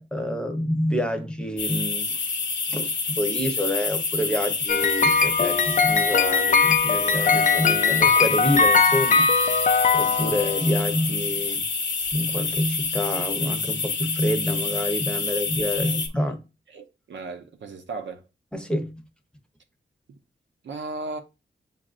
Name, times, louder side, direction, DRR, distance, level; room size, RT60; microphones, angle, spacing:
voice 1, 0.0-2.2 2.7-9.3 9.9-11.7 12.1-16.4 18.5-19.0, left 1 dB, 5° left, 0.8 m, -27 dB
sound 1, 1.6-16.1, left 4 dB, 85° left, 0.9 m, -28 dB
sound 2, 4.7-10.7, left 5 dB, 45° left, 0.4 m, -20 dB
voice 2, 16.7-18.2 20.6-21.2, right 3 dB, 90° right, 0.7 m, -36 dB
7.3 x 2.5 x 2.5 m
wide cardioid pair, 85°, 19 cm